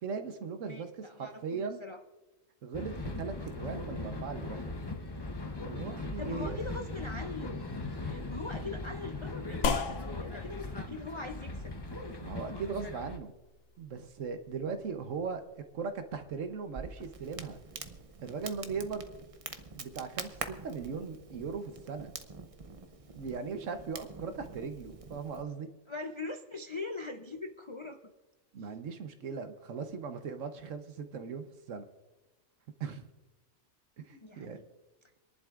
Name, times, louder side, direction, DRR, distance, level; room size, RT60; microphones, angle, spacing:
voice 1, 0.0-1.8 2.6-4.8 5.6-6.6 12.2-13.3 13.8-15.4 15.7-17.6 18.2-19.1 19.8-22.1 23.1-25.7 28.5-31.9 32.8-33.1 34.0-34.6, right 5 dB, 65° right, 7 dB, 1.3 m, -38 dB
voice 2, 0.6-2.0 6.2-7.6 8.0-11.8 25.9-28.0 34.2-34.6, left 3 dB, 45° left, 6 dB, 0.3 m, -42 dB
sound 1, 2.7-13.2, left 2 dB, 20° left, 0.7 m, -39 dB
sound 2, 9.6-18.4, left 5 dB, 65° left, 1.0 m, -41 dB
Crackle, 16.7-25.4, right 4 dB, 35° right, 0.6 m, -45 dB
27.5 x 11.0 x 2.5 m, 1.1 s
omnidirectional pair, 1.4 m